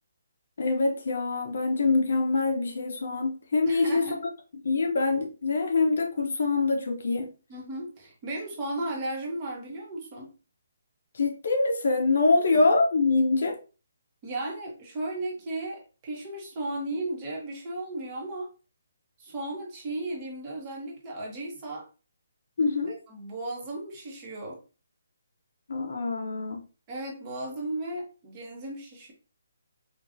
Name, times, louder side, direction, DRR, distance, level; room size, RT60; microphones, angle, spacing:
voice 1, 0.6-4.0 4.6-7.3 11.1-13.6 22.6-23.0 25.7-26.6, left 3 dB, 55° left, 0.8 m, -25 dB
voice 2, 3.7-4.2 7.5-10.3 12.5-12.7 14.2-18.5 19.2-21.8 23.1-24.6 26.9-29.1, right 2 dB, 20° right, 0.9 m, -35 dB
4.9 x 2.4 x 2.6 m
hypercardioid pair, 175°, 0 cm